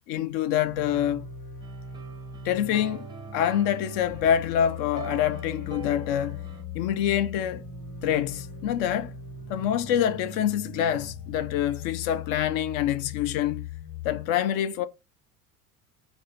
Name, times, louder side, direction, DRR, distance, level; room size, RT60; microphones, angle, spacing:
voice 1, 0.1-1.3 2.4-3.1 3.3-6.4 6.7-7.6 8.0-9.1 9.5-13.7 14.0-14.9, left 10 dB, 50° left, 0.5 m, -26 dB
sound 1, 0.6-14.3, left 5 dB, 70° left, 1.1 m, -40 dB
sound 2, 1.6-6.6, right 4 dB, 10° right, 0.6 m, -44 dB
Wind instrument woodwind instrument, 5.1-9.5, left 2 dB, 20° left, 0.9 m, -49 dB
4.0 x 2.1 x 2.5 m
hypercardioid pair, 70°, 45 cm